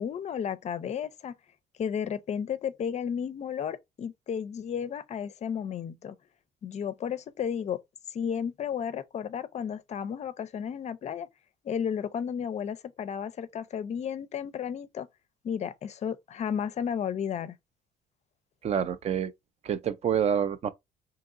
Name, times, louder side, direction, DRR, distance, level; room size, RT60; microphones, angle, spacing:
voice 1, 0.0-1.4 1.8-6.1 6.6-7.8 8.1-11.3 11.6-15.1 15.4-17.6, left 8 dB, 40° left, 0.5 m, -33 dB
voice 2, 18.6-19.3 19.6-20.7, right 8 dB, 40° right, 0.4 m, -27 dB
3.7 x 2.8 x 2.5 m
cardioid pair, 110°, 17 cm